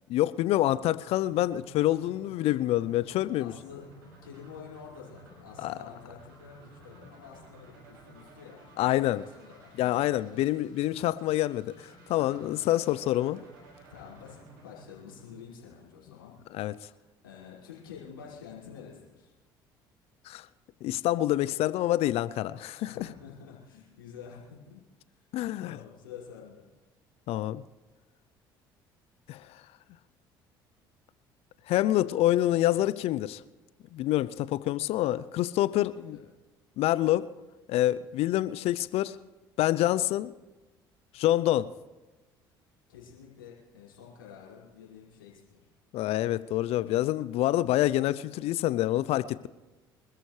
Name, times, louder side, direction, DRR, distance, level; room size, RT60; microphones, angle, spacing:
voice 1, 0.1-3.5 5.6-5.8 8.8-9.2 9.8-13.4 16.5-16.7 20.3-20.5 20.8-23.1 25.3-25.8 27.3-27.6 29.3-29.6 31.7-33.4 33.9-36.2 36.8-37.4 37.7-39.2 39.6-40.3 41.1-41.7 45.9-49.5, left 14 dB, 60° left, 0.6 m, -27 dB
sound 1, 1.1-16.0, right 2 dB, 85° right, 6.1 m, -54 dB
voice 2, 3.4-10.1 12.1-12.4 13.9-16.4 16.6-19.3 22.8-24.8 25.1-25.2 25.6-26.7 35.9-36.2 42.9-45.6 49.2-49.3, left 7 dB, 90° left, 5.5 m, -49 dB
26.0 x 14.0 x 3.3 m
hypercardioid pair, 60°, 11 cm